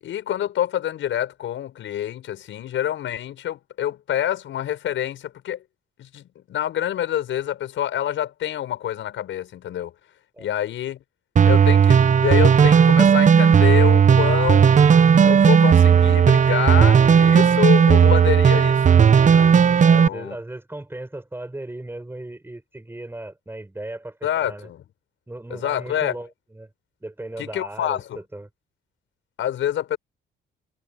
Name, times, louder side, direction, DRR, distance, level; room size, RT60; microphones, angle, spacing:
voice 1, 0.0-5.6 6.0-9.9 10.4-11.0 11.4-14.9 15.2-18.8 19.3-19.6 19.9-20.4 24.2-24.8 25.5-26.2 27.4-28.2 29.4-30.0, left 11 dB, 75° left, 7.0 m, -27 dB
sound 1, 11.4-20.1, right 7 dB, 40° right, 0.8 m, -14 dB
voice 2, 19.8-24.7 25.3-26.7 27.0-28.5, right 1 dB, 10° right, 7.2 m, -36 dB
cardioid pair, 90°, 20 cm